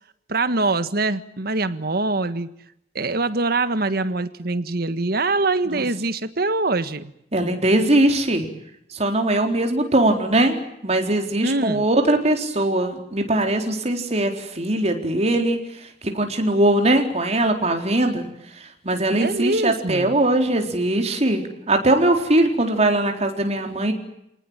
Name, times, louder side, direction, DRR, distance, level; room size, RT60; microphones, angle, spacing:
voice 1, 0.3-2.5 2.9-7.1 11.4-11.8 19.2-20.1, right 2 dB, 60° right, 12 dB, 1.6 m, -23 dB
voice 2, 7.3-8.5 8.9-15.9 16.1-18.3 18.6-23.9, right 1 dB, 40° right, 4 dB, 4.1 m, -21 dB
29.0 x 19.0 x 8.9 m, 0.80 s
head